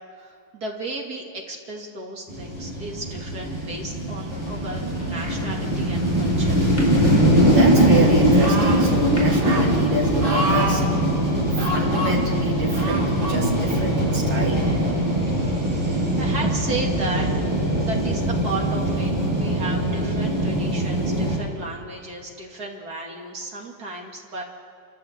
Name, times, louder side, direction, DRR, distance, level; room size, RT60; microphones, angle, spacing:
voice 1, 0.2-6.7 15.0-24.4, right 2 dB, 50° right, 0 dB, 3.0 m, -34 dB
sound 1, 2.3-21.4, right 1 dB, 10° right, 8.1 m, -21 dB
sound 2, 4.3-9.7, equal, 15° left, 5.0 m, -40 dB
voice 2, 7.4-10.9 11.6-14.7, right 2 dB, 70° right, -3 dB, 3.8 m, -27 dB
sound 3, 8.4-8.9 9.4-9.7 10.2-10.8 11.6-12.1 12.7-13.4 14.1-14.2, right 1 dB, 85° right, 4.3 m, -27 dB
27.5 x 14.5 x 8.2 m, 2.3 s
omnidirectional pair, 2.1 m